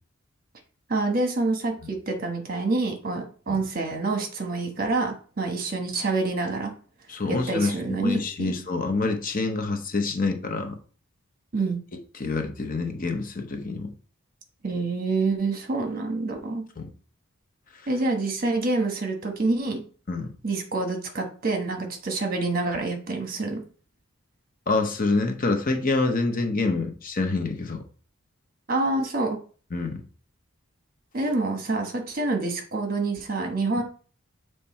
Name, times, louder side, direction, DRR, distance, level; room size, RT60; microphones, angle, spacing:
voice 1, 0.9-6.7 7.3-8.5 11.5-11.8 14.6-16.6 17.9-19.8 20.4-23.6 28.7-29.4 31.1-33.8, right 3 dB, 45° right, 4 dB, 1.2 m, -27 dB
voice 2, 7.1-10.8 12.1-13.9 16.8-16.9 20.1-20.3 24.7-27.8 29.7-30.0, left 3 dB, 40° left, 5 dB, 0.8 m, -26 dB
7.1 x 3.3 x 4.3 m, 0.41 s
head